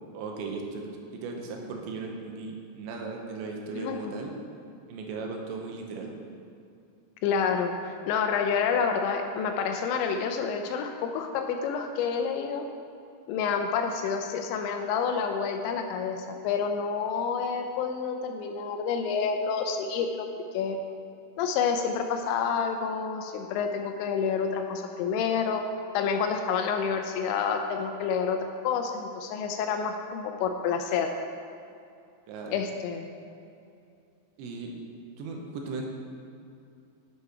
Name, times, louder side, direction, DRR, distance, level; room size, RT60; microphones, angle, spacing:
voice 1, 0.1-0.8 1.1-4.3 4.9-6.1 32.3-32.6 34.4-34.7 35.2-35.9, right 4 dB, 80° right, 1 dB, 3.0 m, -37 dB
voice 2, 7.2-12.7 13.3-20.3 20.5-20.8 21.4-25.6 25.9-31.1 32.5-33.1, left 6 dB, 80° left, 5 dB, 2.7 m, -28 dB
8.2 x 8.1 x 4.8 m, 2.6 s
omnidirectional pair, 5.5 m